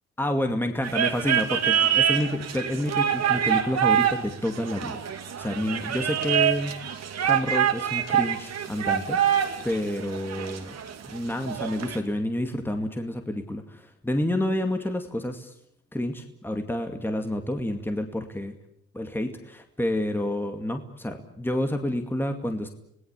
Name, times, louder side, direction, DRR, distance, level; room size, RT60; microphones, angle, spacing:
voice 1, 0.2-6.9 7.2-10.7 11.1-15.5 15.9-18.5 18.9-22.7, left 1 dB, 5° left, 5 dB, 2.3 m, -29 dB
sound 1, 0.8-12.0, right 9 dB, 60° right, 2.6 m, -26 dB
26.5 x 18.5 x 8.4 m, 0.76 s
cardioid pair, 90°, 30 cm